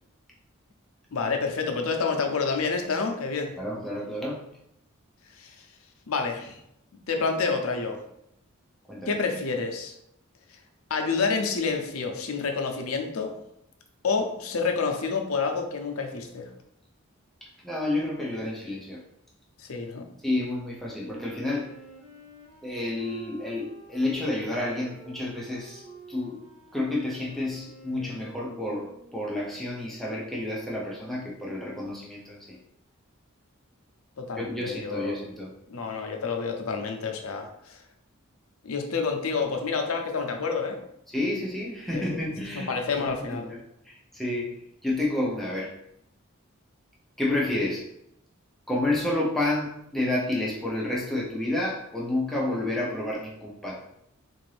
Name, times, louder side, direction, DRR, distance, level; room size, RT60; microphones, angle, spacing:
voice 1, 1.1-3.5 5.3-5.7 6.1-6.6 7.1-8.0 9.1-9.9 10.9-13.3 14.0-16.5 19.6-20.1 34.2-35.2 35.7-37.8 38.6-40.8 41.9-42.2 42.5-43.5, left 4 dB, 85° left, 4 dB, 0.6 m, -28 dB
voice 2, 3.6-4.4 8.9-9.1 17.6-19.0 20.2-21.7 22.6-26.5 26.7-32.6 34.4-35.5 41.1-43.6 43.9-44.6 44.8-45.7 47.2-47.9 48.7-53.8, left 1 dB, ahead, -4 dB, 0.6 m, -30 dB
Wind instrument woodwind instrument, 20.9-29.4, right 2 dB, 65° right, 1.2 m, -48 dB
3.8 x 2.5 x 3.2 m, 0.77 s
head